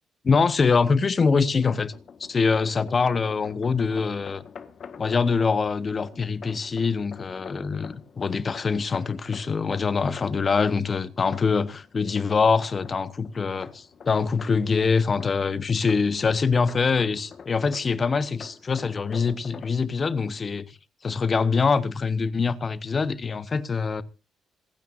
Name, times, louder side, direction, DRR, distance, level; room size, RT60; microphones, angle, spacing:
voice 1, 0.2-1.9 2.3-4.4 5.0-20.7 21.0-24.0, left 5 dB, 40° left, 1.0 m, -24 dB
sound 1, 1.3-19.8, left 6 dB, 55° left, 1.4 m, -46 dB
26.5 x 9.5 x 2.6 m
cardioid pair, 90°, 0 cm